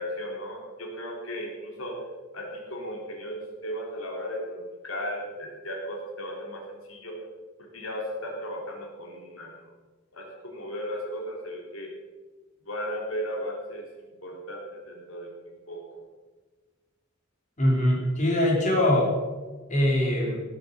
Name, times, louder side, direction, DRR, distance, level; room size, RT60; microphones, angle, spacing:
voice 1, 0.0-1.9 2.3-7.1 7.7-9.7 10.1-11.9 12.7-13.8 14.2-15.3 15.7-16.0, equal, 90° left, 0 dB, 3.9 m, -36 dB
voice 2, 17.6-19.1 19.7-20.4, left 1 dB, 35° left, -2 dB, 4.5 m, -22 dB
18.5 x 9.3 x 7.1 m, 1.3 s
head